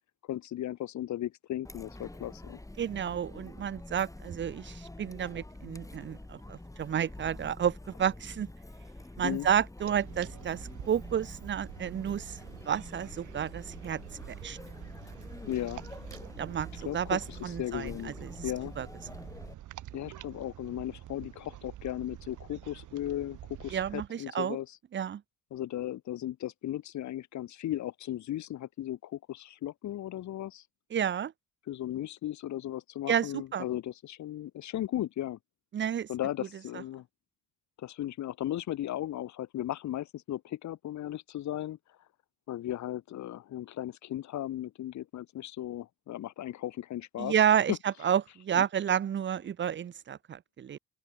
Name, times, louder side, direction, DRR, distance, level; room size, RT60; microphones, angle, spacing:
voice 1, 0.3-2.6 9.2-9.5 15.5-15.8 16.8-17.2 17.6-18.1 18.4-18.7 19.9-24.7 25.5-30.6 31.7-35.4 36.1-37.1 37.8-41.8 42.5-47.3 47.7-47.8 48.5-48.6, left 13 dB, 70° left, 1.1 m, -36 dB
Chatter, 1.6-19.5, left 1 dB, 10° left, 6.8 m, -46 dB
voice 2, 2.8-8.5 9.2-12.4 12.6-14.0 14.4-14.6 16.4-18.3 18.8-18.9 23.7-24.6 24.9-25.2 30.9-31.3 33.1-33.7 35.7-36.1 47.2-50.8, right 9 dB, 40° right, 0.7 m, -30 dB
sound 1, 9.8-24.1, right 13 dB, 80° right, 4.3 m, -47 dB
open air
cardioid pair, 90°, 30 cm